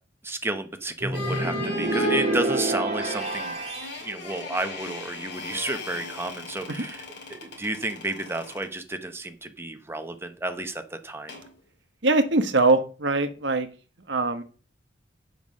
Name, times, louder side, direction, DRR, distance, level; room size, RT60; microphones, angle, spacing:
voice 1, 0.2-3.6 4.0-7.0 7.3-11.4, right 2 dB, 15° right, 7 dB, 0.9 m, -31 dB
sound 1, 1.0-4.0, right 2 dB, 35° right, 2.0 m, -28 dB
sound 2, 1.1-8.7 11.3-11.5, left 1 dB, 60° left, 2.6 m, -36 dB
voice 2, 12.0-13.7 14.1-14.4, right 3 dB, 65° right, 9 dB, 1.2 m, -22 dB
7.4 x 5.4 x 6.3 m, 0.37 s
head